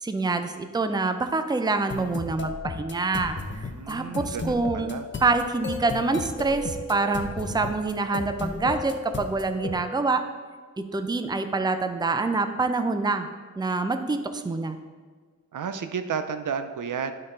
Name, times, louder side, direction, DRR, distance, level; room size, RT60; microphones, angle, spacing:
voice 1, 0.0-4.9 5.2-10.2 10.8-13.3 13.6-14.8, right 3 dB, 15° right, 8 dB, 0.5 m, -26 dB
sound 1, 1.9-9.7, left 3 dB, 35° left, 0.7 m, -35 dB
voice 2, 3.7-5.0 15.5-17.1, right 6 dB, 70° right, 9 dB, 0.5 m, -32 dB
9.2 x 4.0 x 3.7 m, 1.5 s
cardioid pair, 55°, 32 cm